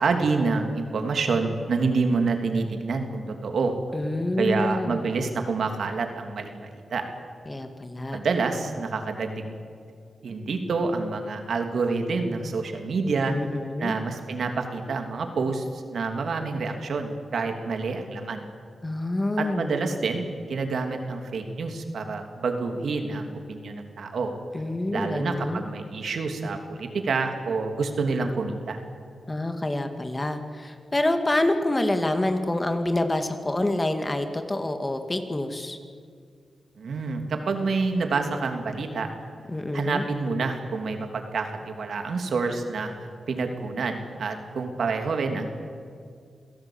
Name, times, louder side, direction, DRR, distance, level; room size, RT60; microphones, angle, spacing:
voice 1, 0.0-3.7 4.4-7.0 8.1-9.5 10.2-13.3 13.8-18.4 19.4-24.3 24.9-28.8 36.8-39.1 39.7-42.9 43.3-45.5, right 4 dB, 75° right, 5 dB, 3.1 m, -27 dB
voice 2, 3.9-5.1 7.5-8.2 13.3-13.9 18.8-19.7 24.5-25.6 29.3-35.8 39.5-40.0, left 1 dB, 25° left, 6 dB, 2.5 m, -27 dB
27.0 x 17.5 x 9.0 m, 2.2 s
cardioid pair, 75°, 0 cm